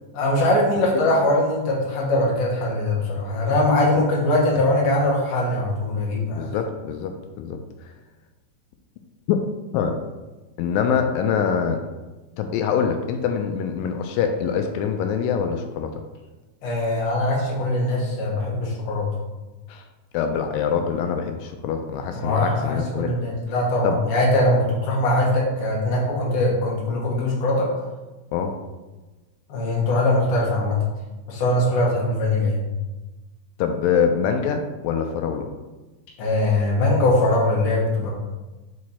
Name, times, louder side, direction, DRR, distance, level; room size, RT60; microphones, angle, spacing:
voice 1, 0.1-6.5 16.6-19.1 22.1-27.7 29.5-30.8 31.3-32.6 36.2-38.1, left 1 dB, 55° left, -4 dB, 1.9 m, -21 dB
voice 2, 6.3-7.6 9.3-9.4 9.7-10.0 10.6-11.8 12.4-16.0 19.7-19.8 20.1-23.1 23.8-24.0 28.3-28.5 33.6-35.5, left 7 dB, 80° left, 6 dB, 2.1 m, -24 dB
5.1 x 4.7 x 4.2 m, 1.2 s
omnidirectional pair, 4.2 m